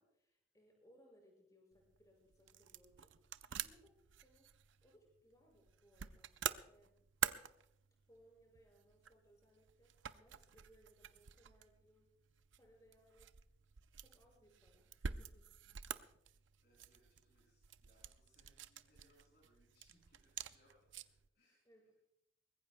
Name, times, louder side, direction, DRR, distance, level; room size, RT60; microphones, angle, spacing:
voice 1, 0.0-3.2 3.6-6.4 6.6-7.0 8.1-12.1 12.6-13.3 13.9-15.5 21.6-21.9, equal, 20° left, 0 dB, 5.7 m, -68 dB
sound 1, 1.7-21.3, right 9 dB, 80° right, 0.6 m, -48 dB
voice 2, 16.6-20.9 21.3-21.9, equal, 55° left, -5 dB, 6.1 m, -73 dB
23.5 x 20.5 x 2.2 m, 0.78 s
head